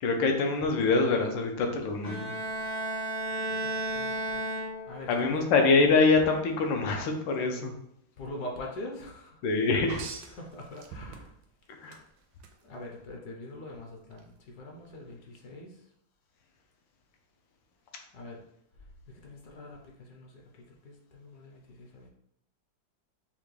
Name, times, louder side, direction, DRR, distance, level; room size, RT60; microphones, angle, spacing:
voice 1, 0.0-2.3 5.1-7.7 9.4-10.0 11.8-12.0, left 4 dB, 85° left, 3 dB, 1.4 m, -25 dB
Bowed string instrument, 2.0-5.2, right 2 dB, 40° left, 0.4 m, -33 dB
voice 2, 3.6-4.5 4.9-5.5 8.2-9.4 10.3-11.3 12.7-15.7 18.1-18.4 19.2-22.1, left 1 dB, 65° left, 0 dB, 1.2 m, -43 dB
sound 1, 9.9-11.5 11.9-12.5 14.1-14.2, right 5 dB, 80° right, 1.2 m, -43 dB
5.9 x 2.2 x 3.2 m, 0.75 s
omnidirectional pair, 2.0 m